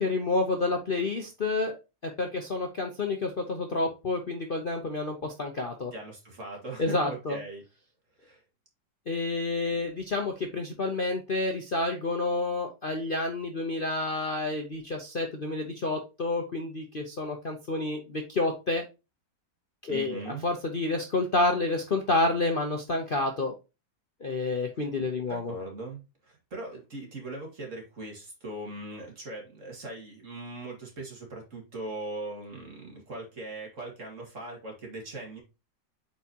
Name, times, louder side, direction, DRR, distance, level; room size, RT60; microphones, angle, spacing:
voice 1, 0.0-1.7 2.0-5.9 6.8-7.4 9.1-18.8 19.8-23.5 24.2-25.5, left 2 dB, 40° left, 0.9 m, -29 dB
voice 2, 5.9-7.6 8.2-8.4 19.9-20.5 25.0-35.4, right 2 dB, 45° right, 2.5 m, -40 dB
8.2 x 4.7 x 2.9 m
omnidirectional pair, 1.9 m